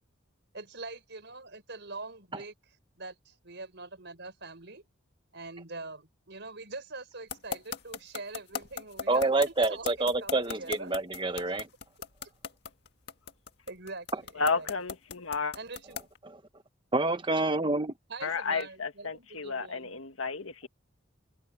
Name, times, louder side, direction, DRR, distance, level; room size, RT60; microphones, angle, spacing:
voice 1, 0.5-2.5 3.0-4.8 5.3-10.9 11.5-11.6 13.7-14.7 15.5-16.0 18.1-20.0, right 3 dB, 60° right, 5.5 m, -44 dB
sound 1, 7.3-16.2, left 6 dB, 55° left, 1.8 m, -37 dB
voice 2, 9.1-11.7 14.1-14.2 16.2-16.4 16.9-17.9, right 2 dB, 25° right, 1.5 m, -27 dB
voice 3, 14.4-15.5 18.2-20.7, left 4 dB, 85° left, 1.9 m, -32 dB
head